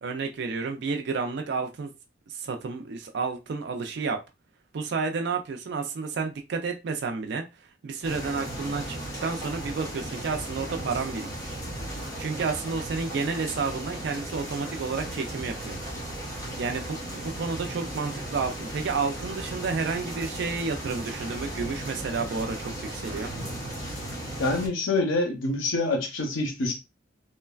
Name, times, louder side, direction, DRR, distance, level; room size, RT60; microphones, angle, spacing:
voice 1, 0.0-1.9 2.3-4.2 4.7-7.4 7.8-11.6 12.2-15.8 16.5-23.3, right 4 dB, 60° right, 0.4 m, -31 dB
sound 1, 8.0-24.7, right 1 dB, 20° left, 1.0 m, -36 dB
voice 2, 24.4-26.7, left 2 dB, 90° left, 0.6 m, -26 dB
3.1 x 2.2 x 2.3 m
head